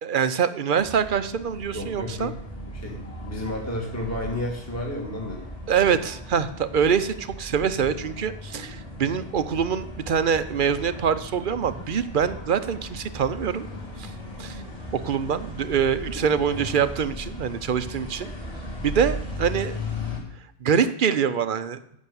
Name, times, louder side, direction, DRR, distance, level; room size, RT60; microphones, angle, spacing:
voice 1, 0.0-2.3 5.7-13.7 14.0-14.1 14.4-14.6 14.9-18.3 18.8-19.8 20.6-21.8, right 7 dB, 50° right, 12 dB, 0.7 m, -24 dB
sound 1, 0.8-20.2, left 1 dB, 30° left, 3.9 m, -37 dB
voice 2, 1.7-2.3 2.7-5.5 16.3-16.4, left 1 dB, 15° left, -1 dB, 1.9 m, -32 dB
10.5 x 7.2 x 6.9 m, 0.74 s
omnidirectional pair, 1.2 m